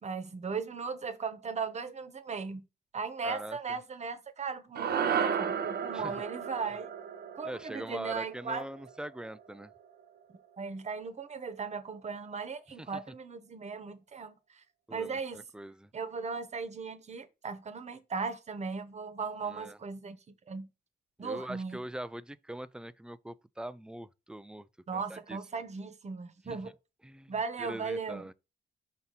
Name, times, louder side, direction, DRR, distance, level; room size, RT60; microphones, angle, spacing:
voice 1, 0.0-2.6 2.9-6.9 7.3-8.7 10.6-14.6 14.9-15.4 15.9-20.7 21.2-21.8 24.9-26.7 27.3-28.3, right 5 dB, 40° right, 1.1 m, -37 dB
voice 2, 3.2-3.6 5.9-6.2 7.4-9.7 12.8-12.9 14.9-15.9 19.5-19.8 21.2-25.4 26.5-26.6 27.0-27.3 27.6-28.3, right 1 dB, 5° right, 0.4 m, -42 dB
sound 1, 4.8-9.2, right 7 dB, 65° right, 0.9 m, -34 dB
5.9 x 4.1 x 4.0 m
cardioid pair, 100°, 18 cm